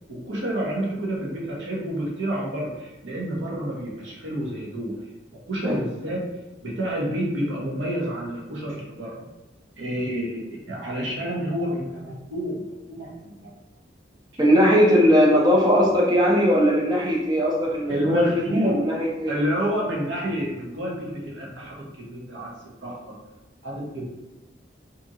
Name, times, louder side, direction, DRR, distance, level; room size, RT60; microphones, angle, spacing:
voice 1, 0.1-5.0 5.3-6.3 6.6-9.2 9.8-13.5 17.9-18.8 19.3-22.5 22.8-23.2 23.6-24.0, equal, 85° right, -3 dB, 0.8 m, -29 dB
voice 2, 14.4-19.4, equal, 20° right, -2 dB, 0.5 m, -19 dB
2.6 x 2.5 x 2.7 m, 1.0 s
head